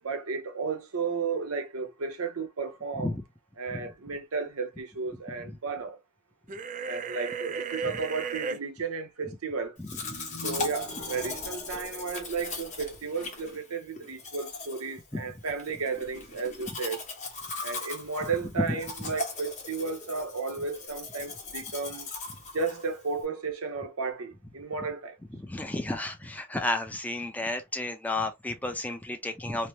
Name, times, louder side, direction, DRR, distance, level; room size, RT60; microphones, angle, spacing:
voice 1, 0.0-3.1 3.6-6.0 6.9-9.7 10.4-17.0 17.6-22.1 22.5-25.1, right 4 dB, 85° right, 0.8 m, -33 dB
sound 1, 6.5-8.6, right 5 dB, 35° right, 0.4 m, -34 dB
Domestic sounds home sounds, 9.8-23.2, left 3 dB, 35° left, 1.2 m, -39 dB
sound 2, 10.0-13.1, equal, 60° left, 0.9 m, -45 dB
voice 2, 25.4-29.7, left 2 dB, 5° left, 0.6 m, -32 dB
3.2 x 2.1 x 2.7 m
head